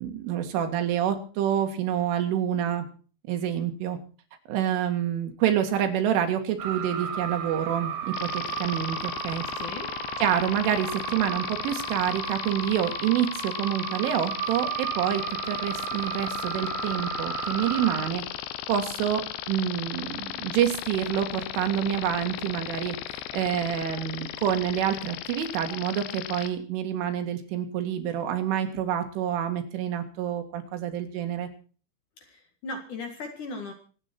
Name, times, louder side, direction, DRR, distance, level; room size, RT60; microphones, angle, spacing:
voice 1, 0.0-2.9 3.3-4.0 4.5-9.5 10.2-18.2 18.7-31.5, right 10 dB, 85° right, 5 dB, 4.4 m, -27 dB
sound 1, 6.6-18.1, right 8 dB, 60° right, 2.8 m, -34 dB
sound 2, 8.1-26.5, left 13 dB, 80° left, 3.0 m, -36 dB
voice 2, 9.6-9.9 32.2-33.7, left 3 dB, 55° left, 4 dB, 2.7 m, -37 dB
25.0 x 9.1 x 4.4 m, 0.39 s
omnidirectional pair, 5.5 m